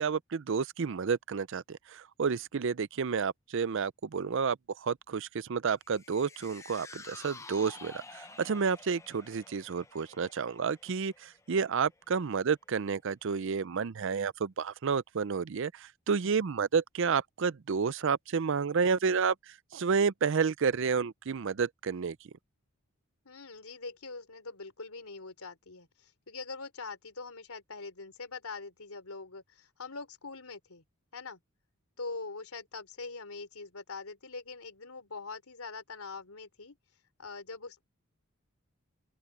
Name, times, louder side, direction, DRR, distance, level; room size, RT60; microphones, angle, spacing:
voice 1, 0.0-22.2, right 5 dB, 60° right, 0.5 m, -30 dB
sound 1, 5.9-12.3 12.7-12.8, left 3 dB, 15° left, 0.6 m, -51 dB
voice 2, 23.2-30.8 31.1-31.4 32.0-36.8 37.2-37.8, left 4 dB, 90° left, 3.5 m, -43 dB
open air
head